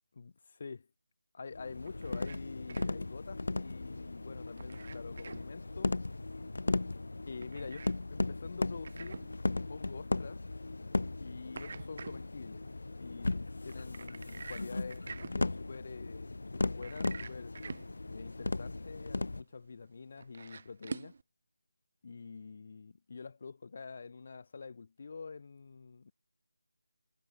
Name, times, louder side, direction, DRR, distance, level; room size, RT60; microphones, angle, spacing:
voice 1, 1.3-5.9 7.2-9.3 9.7-10.4 11.2-12.6 13.0-17.6 18.1-21.1 22.0-26.1, left 4 dB, 40° left, 0.9 m, -46 dB
sound 1, 1.5-19.4, left 2 dB, 70° left, 0.5 m, -37 dB
sound 2, 1.7-21.2, right 4 dB, 40° right, 0.6 m, -50 dB
figure-of-eight pair, 170°, 0 cm